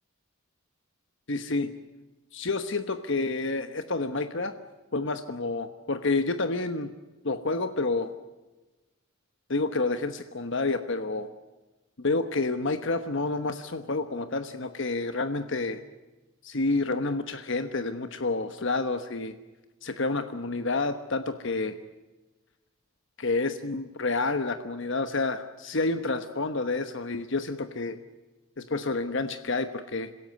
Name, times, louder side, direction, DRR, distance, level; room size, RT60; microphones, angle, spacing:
voice 1, 1.3-1.7 2.3-4.5 4.9-6.9 7.2-8.1 9.5-11.3 12.0-15.8 16.4-19.3 19.8-21.8 23.2-28.0 28.6-30.1, left 3 dB, 60° left, 9 dB, 1.1 m, -29 dB
27.0 x 16.5 x 9.5 m, 1.2 s
head